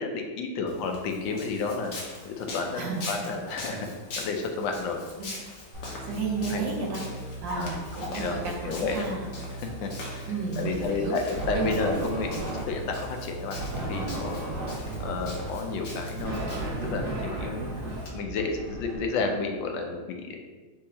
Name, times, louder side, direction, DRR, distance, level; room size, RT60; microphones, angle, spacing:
voice 1, 0.0-1.9 2.2-3.9 4.2-5.0 6.5-6.6 7.6-7.7 8.1-8.4 8.6-9.1 9.8-14.4 15.0-16.5 16.8-17.6 18.1-20.4, left 4 dB, 75° left, 3 dB, 1.2 m, -31 dB
Walk footsteps, 0.7-18.1, left 2 dB, 60° left, 0.9 m, -42 dB
voice 2, 2.7-3.1 5.2-5.3 6.0-7.0 7.4-9.3 10.3-11.2 11.5-11.7, right 4 dB, 65° right, -2 dB, 1.4 m, -32 dB
sound 1, 5.7-19.0, right 1 dB, 85° right, 2.4 m, -40 dB
sound 2, 11.3-13.0 13.6-18.7, right 2 dB, 45° right, 1.3 m, -34 dB
6.3 x 2.8 x 2.7 m, 1.4 s
omnidirectional pair, 2.3 m